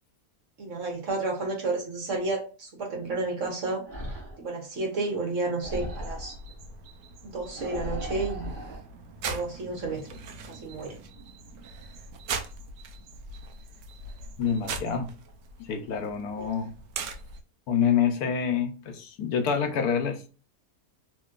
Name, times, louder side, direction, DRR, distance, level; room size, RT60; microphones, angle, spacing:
voice 1, 0.6-3.8 4.4-6.3 7.2-8.5 9.2-10.1 10.4-10.9 16.4-16.5, right 3 dB, 55° right, 1.3 m, -31 dB
sound 1, 3.8-4.5 5.6-6.4 7.5-8.8, equal, 35° right, 1.1 m, -36 dB
sound 2, 5.6-17.4, right 4 dB, 90° right, 1.2 m, -41 dB
voice 2, 14.4-15.1 15.6-16.7 17.7-20.3, left 7 dB, 75° left, 1.1 m, -27 dB
3.0 x 3.0 x 2.3 m
omnidirectional pair, 1.6 m